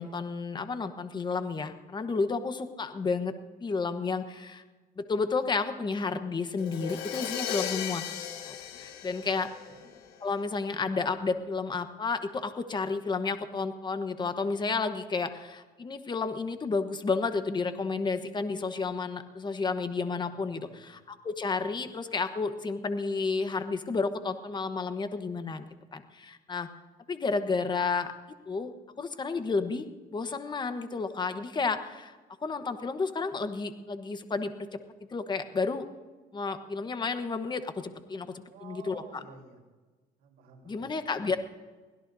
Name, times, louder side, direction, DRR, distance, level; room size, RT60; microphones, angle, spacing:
voice 1, 0.0-3.3 3.6-4.6 5.0-8.1 8.5-9.5 10.2-25.6 25.9-26.7 27.1-28.1 28.5-29.9 30.1-32.1 32.4-34.8 35.1-35.9 36.3-38.3 38.6-39.2 40.7-41.4, left 4 dB, 25° left, 9 dB, 1.1 m, -31 dB
Crash cymbal, 6.6-10.3, left 9 dB, 90° left, 1.6 m, -36 dB
voice 2, 9.2-9.8 20.3-21.0 38.5-39.6 40.2-40.9, right 5 dB, 80° right, 0 dB, 4.2 m, -52 dB
23.5 x 16.5 x 2.7 m, 1.3 s
cardioid pair, 110°, 17 cm